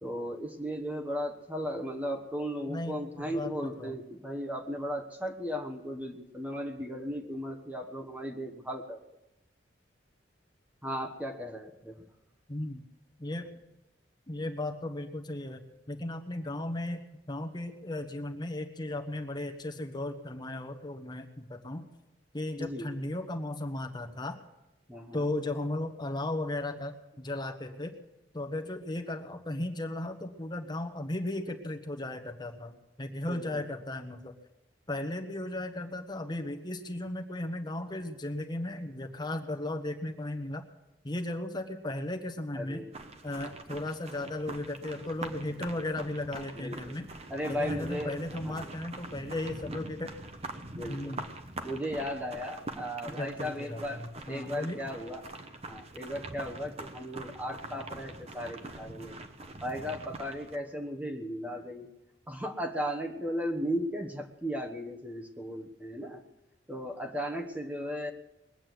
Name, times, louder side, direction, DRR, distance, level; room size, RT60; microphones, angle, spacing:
voice 1, 0.0-9.0 10.8-12.0 22.6-22.9 24.9-25.3 33.3-33.6 42.6-42.9 46.6-47.0 47.3-48.2 48.4-48.6 50.8-51.2 51.6-55.2 55.6-59.1 59.6-61.9 62.3-66.2 66.7-68.1, equal, 10° right, 2 dB, 1.1 m, -36 dB
voice 2, 2.7-4.0 12.5-12.8 13.2-13.5 14.3-15.6 15.9-21.9 22.3-24.4 25.1-27.9 28.3-34.3 34.9-40.6 41.0-42.9 43.2-47.1 47.4-50.1 50.9-51.2 53.1-54.8, left 1 dB, 25° left, 5 dB, 1.2 m, -36 dB
sound 1, 42.9-60.6, right 2 dB, 35° right, 1.1 m, -44 dB
21.0 x 8.8 x 7.8 m, 0.92 s
head